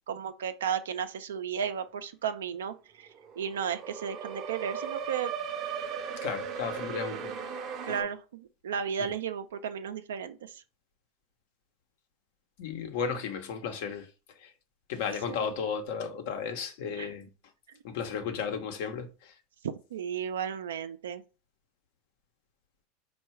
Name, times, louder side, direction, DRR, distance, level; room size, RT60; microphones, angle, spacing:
voice 1, 0.1-3.1 3.4-5.3 7.1-7.3 7.8-10.6 15.3-15.5 16.9-17.1 19.9-21.2, right 7 dB, 90° right, 0.5 m, -34 dB
sound 1, 3.1-8.0, right 7 dB, 45° right, 0.7 m, -37 dB
voice 2, 6.2-7.3 12.6-14.1 14.4-14.5 14.9-17.3 17.8-19.3, left 6 dB, 70° left, 0.9 m, -34 dB
4.6 x 2.3 x 4.4 m
hypercardioid pair, 110°, 0 cm